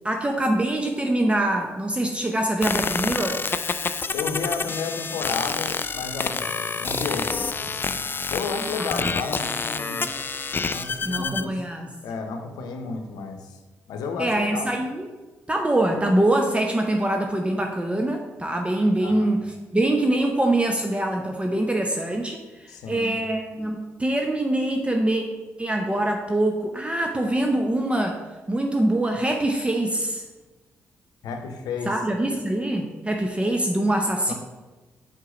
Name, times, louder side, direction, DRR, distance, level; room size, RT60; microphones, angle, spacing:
voice 1, 0.0-3.4 8.8-9.1 11.0-11.9 14.2-15.1 15.5-19.5 19.7-25.2 25.6-28.2 28.5-30.2 31.8-34.3, right 1 dB, 15° right, 3 dB, 0.7 m, -24 dB
sound 1, 2.6-11.5, left 4 dB, 35° left, 0.4 m, -28 dB
voice 2, 4.1-8.0 8.3-10.1 10.6-11.6 12.0-13.6 13.9-14.7 19.0-19.3 22.7-23.1 31.2-32.0 34.3-34.4, left 4 dB, 70° left, 6 dB, 0.7 m, -32 dB
4.7 x 4.4 x 5.0 m, 1.2 s
hypercardioid pair, 45°, 7 cm